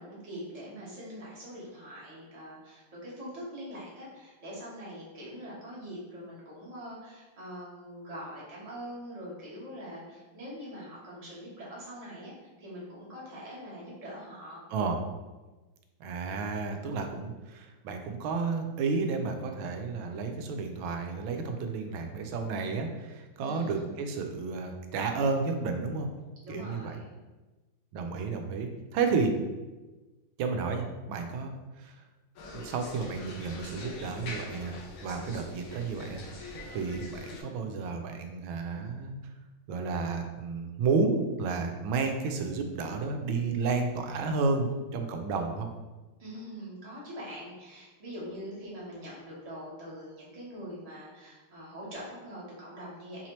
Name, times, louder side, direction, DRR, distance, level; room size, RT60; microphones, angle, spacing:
voice 1, 0.0-14.6 23.4-23.9 26.4-27.2 46.2-53.3, equal, 25° right, -7 dB, 1.0 m, -43 dB
voice 2, 16.0-26.1 26.5-27.0 27.9-29.3 30.4-31.5 31.8-31.9 32.5-34.7 35.0-39.2 39.7-45.7, right 4 dB, 80° right, 5 dB, 1.3 m, -31 dB
sound 1, 32.4-37.4, left 2 dB, 85° left, 1.6 m, -43 dB
4.7 x 2.8 x 3.0 m, 1.2 s
omnidirectional pair, 2.3 m